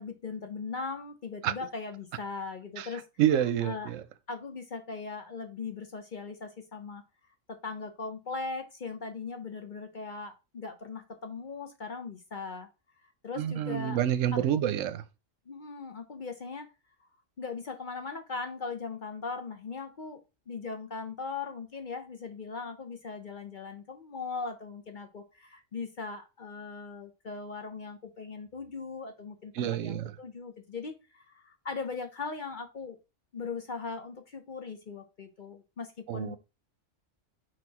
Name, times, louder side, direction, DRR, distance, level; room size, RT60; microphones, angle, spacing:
voice 1, 0.0-3.0 3.6-3.9 4.3-7.0 7.5-12.7 13.2-14.0 14.3-14.7 15.5-16.7 17.4-33.0 33.3-36.4, left 4 dB, 45° left, 0.7 m, -39 dB
voice 2, 3.2-4.0 13.4-15.0 29.5-30.1 36.1-36.4, right 10 dB, 80° right, 1.0 m, -28 dB
4.7 x 4.4 x 4.6 m
omnidirectional pair, 1.3 m